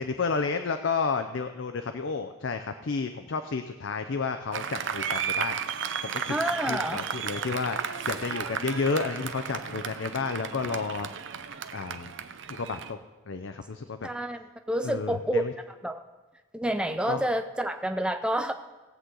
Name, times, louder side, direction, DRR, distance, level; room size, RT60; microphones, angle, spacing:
voice 1, 0.0-5.6 6.0-6.4 6.7-11.1 11.7-12.1 12.5-13.0 13.3-14.1 14.8-15.5 17.1-17.2, left 4 dB, 60° left, 8 dB, 0.5 m, -31 dB
Applause, 4.5-12.9, right 7 dB, 60° right, 0.6 m, -34 dB
voice 2, 6.3-7.0 14.0-15.4 15.8-16.0 16.5-18.5, right 1 dB, 5° right, 7 dB, 0.4 m, -28 dB
17.5 x 8.0 x 3.9 m, 1.2 s
head